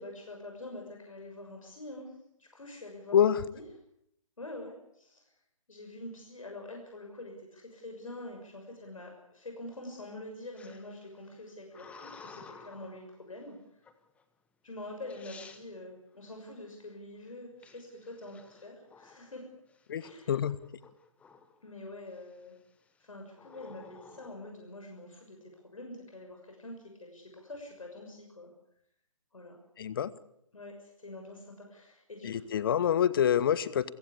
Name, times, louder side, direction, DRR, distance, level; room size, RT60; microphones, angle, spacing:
voice 1, 0.0-2.1 2.4-3.6 4.4-5.2 5.7-13.8 14.6-19.4 20.0-20.4 21.6-22.5 23.0-28.5 29.3-29.5 30.5-32.5, left 1 dB, 70° left, 2 dB, 6.5 m, -45 dB
sound 1, 10.6-13.1 13.8-14.2 14.8-14.9 15.1-15.6 17.6-19.3 19.7-20.1 20.4-21.6 22.1-22.5 23.3-24.4, left 5 dB, 5° left, 1.4 m, -53 dB
voice 2, 19.9-20.6 29.8-30.1 32.2-33.9, left 9 dB, 40° left, 17 dB, 1.3 m, -26 dB
28.0 x 16.5 x 8.5 m, 0.73 s
figure-of-eight pair, 140°, 18 cm